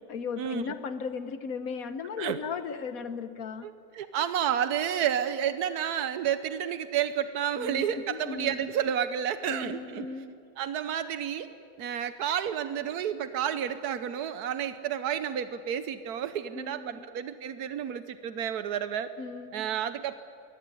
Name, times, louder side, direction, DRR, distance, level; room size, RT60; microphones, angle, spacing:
voice 1, 0.1-3.7 7.6-8.7 9.5-10.4 16.5-17.1 19.2-19.6, left 5 dB, 70° left, 10 dB, 1.4 m, -36 dB
voice 2, 3.6-10.2 10.6-11.5 11.8-19.1 19.5-20.2, right 9 dB, 90° right, 11 dB, 1.4 m, -30 dB
22.5 x 17.5 x 9.7 m, 2.6 s
omnidirectional pair, 1.6 m